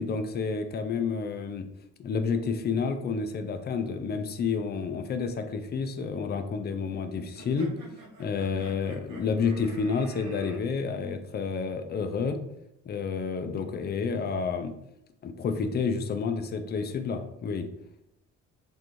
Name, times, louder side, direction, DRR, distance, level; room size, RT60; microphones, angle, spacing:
voice 1, 0.0-1.7 2.0-7.7 8.2-12.4 12.9-14.7 15.2-17.7, left 5 dB, 35° left, 8 dB, 0.4 m, -30 dB
sound 1, 7.4-10.6, right 3 dB, 90° right, 0.9 m, -49 dB
3.3 x 2.6 x 3.0 m, 0.81 s
cardioid pair, 90°, 30 cm